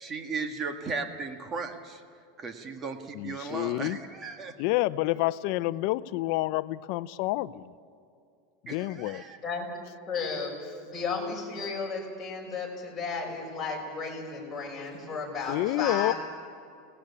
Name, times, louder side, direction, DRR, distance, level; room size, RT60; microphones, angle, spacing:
voice 1, 0.0-2.0 2.4-4.5 8.7-9.4, right 4 dB, 25° right, 6 dB, 1.8 m, -36 dB
voice 2, 3.1-4.0 4.6-7.6 8.6-9.2 15.5-16.1, left 17 dB, 55° left, 14 dB, 0.7 m, -28 dB
voice 3, 10.1-16.1, left 4 dB, 10° left, -3 dB, 6.0 m, -34 dB
30.0 x 18.5 x 8.6 m, 2.5 s
supercardioid pair, 155°, 0 cm